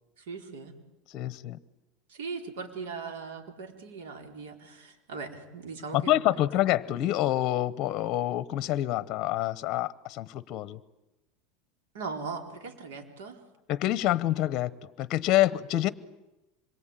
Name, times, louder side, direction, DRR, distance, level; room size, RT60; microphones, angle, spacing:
voice 1, 0.2-0.7 2.1-6.2 6.5-6.6 11.9-13.4, right 4 dB, 85° right, 4 dB, 4.5 m, -39 dB
voice 2, 1.1-1.6 5.9-10.8 13.7-14.7 15.0-15.9, left 14 dB, 40° left, 17 dB, 0.9 m, -27 dB
26.0 x 22.5 x 9.2 m, 0.99 s
supercardioid pair, 150°, 0 cm